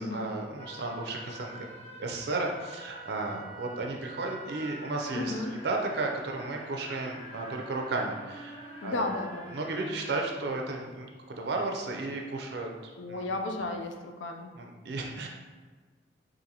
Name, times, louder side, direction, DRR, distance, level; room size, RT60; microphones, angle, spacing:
voice 1, 0.0-9.0 9.5-11.1 11.4-12.7 13.1-13.3 14.6-15.3, right 2 dB, 65° right, 1 dB, 0.4 m, -34 dB
sound 1, 0.6-10.3, right 1 dB, 35° left, 0.6 m, -46 dB
voice 2, 5.1-5.5 8.8-9.5 13.0-14.5, left 2 dB, 90° left, 4 dB, 0.4 m, -33 dB
3.8 x 2.5 x 2.8 m, 1.4 s
head